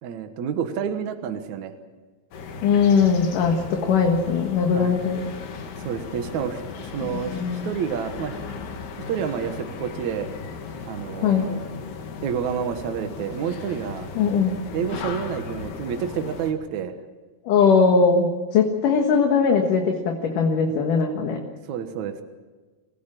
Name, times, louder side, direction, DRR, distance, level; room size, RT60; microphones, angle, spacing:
voice 1, 0.0-1.7 4.7-5.0 5.8-8.4 9.1-10.3 10.9-11.6 12.2-14.1 14.7-16.9 21.7-22.2, right 7 dB, 60° right, 7 dB, 2.2 m, -29 dB
sound 1, 2.3-16.5, left 5 dB, 85° left, 4.2 m, -36 dB
voice 2, 2.6-5.2 7.1-7.7 11.2-11.6 14.2-14.6 17.5-21.4, left 5 dB, 60° left, 2 dB, 3.0 m, -20 dB
26.5 x 16.0 x 7.6 m, 1.3 s
omnidirectional pair, 4.5 m